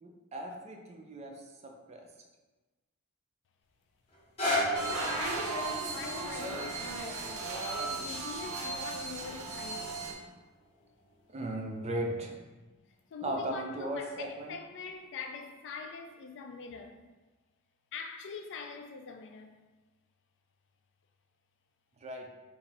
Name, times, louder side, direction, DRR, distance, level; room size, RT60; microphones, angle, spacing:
voice 1, 0.0-2.1 11.3-12.4 13.2-14.5 22.0-22.3, right 1 dB, 30° right, 0.4 m, -37 dB
sound 1, 4.1-10.2 10.9-11.0, left 1 dB, 25° left, 0.8 m, -37 dB
sound 2, 4.7-10.1, right 3 dB, 80° right, 0.7 m, -36 dB
voice 2, 4.8-7.5 7.8-9.9 12.7-17.0 17.9-19.5, left 5 dB, 55° left, 0.3 m, -44 dB
3.0 x 2.6 x 4.0 m
head